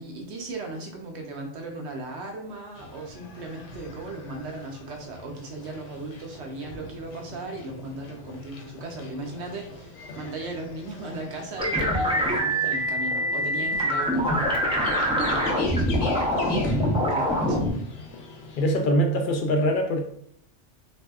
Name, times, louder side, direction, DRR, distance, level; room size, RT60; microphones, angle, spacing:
voice 1, 0.0-16.7 17.1-17.7, right 2 dB, 70° right, 2 dB, 0.9 m, -37 dB
sound 1, 2.7-18.8, left 3 dB, 90° left, 0.9 m, -43 dB
sound 2, 11.6-17.7, equal, 10° right, 0.4 m, -24 dB
voice 2, 18.6-20.1, equal, 60° left, 3 dB, 0.6 m, -23 dB
3.4 x 2.6 x 2.3 m, 0.65 s
omnidirectional pair, 1.2 m